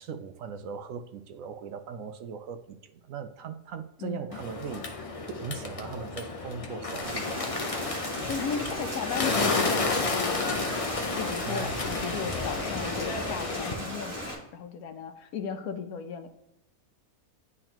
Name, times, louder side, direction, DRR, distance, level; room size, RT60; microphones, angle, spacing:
voice 1, 0.0-7.5 11.4-12.2, right 6 dB, 70° right, 9 dB, 0.9 m, -39 dB
voice 2, 4.0-4.4 8.2-9.9 10.2-10.7 11.1-16.3, left 6 dB, 85° left, 8 dB, 1.2 m, -36 dB
Bird, 4.3-13.7, left 3 dB, 40° left, 0.5 m, -31 dB
Rain, 7.0-14.3, equal, 10° right, 2.2 m, -37 dB
10.5 x 3.7 x 2.9 m, 0.85 s
omnidirectional pair, 1.5 m